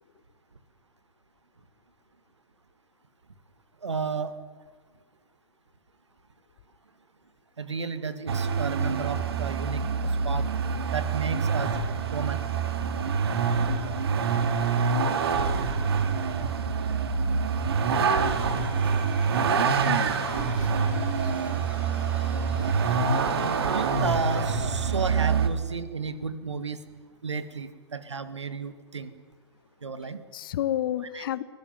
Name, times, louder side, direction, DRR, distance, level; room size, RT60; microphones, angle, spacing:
voice 1, 3.8-4.3 7.6-10.5 10.9-11.8 12.1-12.4 23.2-26.8 27.2-29.1 29.8-30.2 31.1-31.4, right 5 dB, 85° right, 2.0 m, -33 dB
Vehicle, 8.3-25.5, right 5 dB, 60° right, 2.7 m, -26 dB
sound 1, 18.2-24.4, right 1 dB, 10° right, 6.7 m, -46 dB
voice 2, 20.3-21.5 30.3-31.4, left 12 dB, 50° left, 1.2 m, -32 dB
22.5 x 17.0 x 9.4 m
hypercardioid pair, 125°, 15 cm